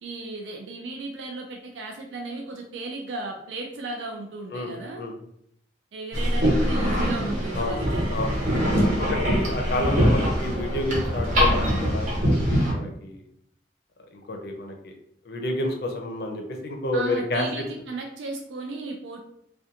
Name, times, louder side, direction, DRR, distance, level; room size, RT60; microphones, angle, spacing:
voice 1, 0.0-5.0 5.9-8.1 8.7-9.7 16.9-19.2, right 3 dB, 90° right, 2 dB, 0.4 m, -35 dB
voice 2, 4.5-5.1 7.6-7.8 8.1-8.4 9.0-13.2 14.1-14.9 15.3-17.6, left 1 dB, 60° left, 3 dB, 0.5 m, -30 dB
sound 1, 6.1-12.7, equal, 45° right, 0.8 m, -23 dB
2.4 x 2.2 x 2.7 m, 0.72 s
head